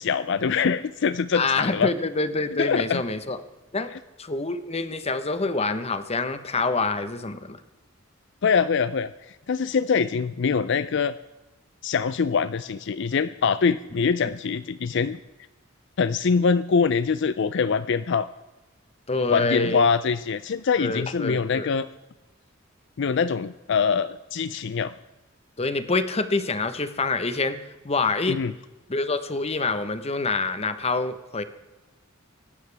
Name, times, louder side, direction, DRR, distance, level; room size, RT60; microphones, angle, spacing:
voice 1, 0.0-1.9 2.6-3.0 8.4-11.1 11.8-15.2 16.0-18.3 19.3-21.9 23.0-24.9 28.3-28.5, left 5 dB, 60° left, 14 dB, 0.5 m, -24 dB
voice 2, 1.3-3.4 3.7-3.9 4.2-7.6 14.2-14.3 19.1-19.8 20.8-21.7 25.6-27.6 27.8-28.4 28.9-31.4, left 3 dB, 30° left, 11 dB, 1.1 m, -26 dB
24.5 x 12.5 x 3.5 m, 1.1 s
head